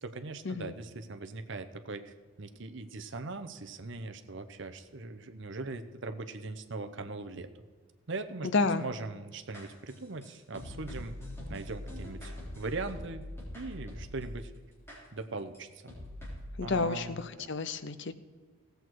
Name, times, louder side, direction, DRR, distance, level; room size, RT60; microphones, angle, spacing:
voice 1, 0.0-7.5 8.1-8.5 8.8-11.2 11.5-13.3 13.5-14.5 15.1-15.7 16.6-17.5, right 3 dB, 55° right, 8 dB, 0.8 m, -40 dB
voice 2, 8.4-8.8 16.6-18.1, left 3 dB, 55° left, 12 dB, 0.6 m, -30 dB
sound 1, 9.5-14.4 14.9-15.0 15.5-15.6 15.9-16.5, left 1 dB, 10° left, 3.6 m, -43 dB
17.0 x 7.9 x 4.6 m, 1.5 s
head